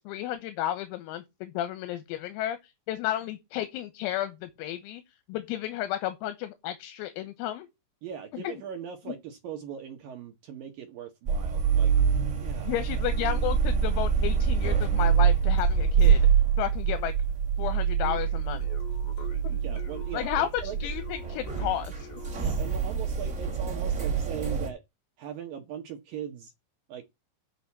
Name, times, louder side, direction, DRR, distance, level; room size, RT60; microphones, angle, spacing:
voice 1, 0.0-5.0 5.3-7.7 8.3-8.4 12.7-16.2 16.6-17.1 17.6-18.7 19.4-19.6 20.1-20.5 20.8-22.1, left 12 dB, 85° left, 3.9 m, -32 dB
voice 2, 8.0-11.9 12.4-13.0 19.2-19.3 19.6-20.8 22.4-24.8 25.2-26.5 26.9-27.0, right 8 dB, 80° right, 2.0 m, -40 dB
sound 1, 11.3-24.7, right 7 dB, 25° right, 2.0 m, -25 dB
sound 2, 18.0-22.8, left 6 dB, 45° left, 3.3 m, -47 dB
7.9 x 6.2 x 7.2 m
omnidirectional pair, 6.0 m